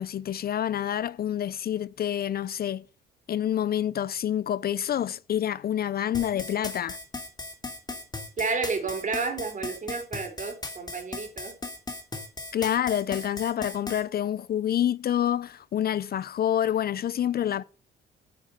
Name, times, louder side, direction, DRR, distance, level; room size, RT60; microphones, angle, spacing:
voice 1, 0.0-2.8 3.3-7.0 12.5-17.6, left 10 dB, 50° left, 0.5 m, -27 dB
sound 1, 6.1-14.0, left 2 dB, 20° left, 3.0 m, -37 dB
voice 2, 8.4-11.5, right 4 dB, 40° right, 4.4 m, -31 dB
10.0 x 7.5 x 6.7 m
cardioid pair, 90°, 20 cm